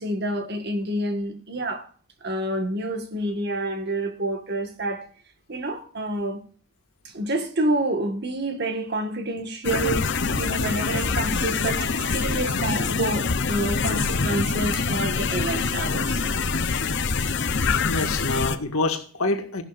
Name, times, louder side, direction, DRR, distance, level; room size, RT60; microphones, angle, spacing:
voice 1, 0.0-1.9 2.2-5.1 5.5-6.4 7.0-16.4, right 1 dB, 50° right, 1.7 m, -28 dB
sound 1, 9.6-18.6, left 4 dB, 55° left, 0.8 m, -25 dB
voice 2, 16.5-16.9 17.9-19.6, left 2 dB, 80° left, 1.9 m, -27 dB
15.0 x 11.5 x 2.5 m
head